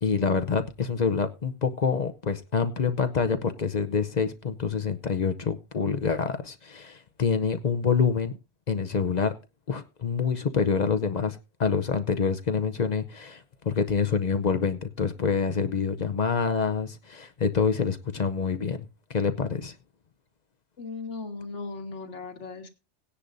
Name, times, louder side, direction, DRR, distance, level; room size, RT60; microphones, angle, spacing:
voice 1, 0.0-8.3 8.7-9.3 9.7-19.7, left 5 dB, 45° left, 0.7 m, -26 dB
voice 2, 20.8-22.7, left 3 dB, 85° left, 1.7 m, -37 dB
18.0 x 10.0 x 2.6 m
omnidirectional pair, 1.2 m